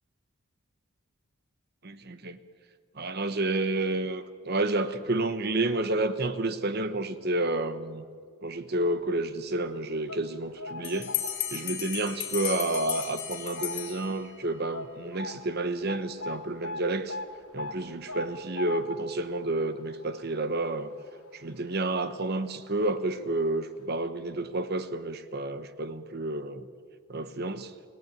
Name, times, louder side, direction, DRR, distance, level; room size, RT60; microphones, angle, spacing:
voice 1, 1.8-2.4 3.0-8.0 8.4-11.1 11.5-17.2 17.5-20.9 21.3-26.6 27.1-27.7, right 2 dB, 45° right, 1.0 m, -30 dB
sound 1, 9.8-11.8 12.2-12.4 13.0-14.1 14.3-14.4 14.7-21.8 22.1-22.2 23.1-23.2 23.5-23.6, left 2 dB, 80° left, 2.3 m, -41 dB
Bell, 10.8-14.5, left 11 dB, 45° left, 4.7 m, -35 dB
29.5 x 18.5 x 9.2 m
head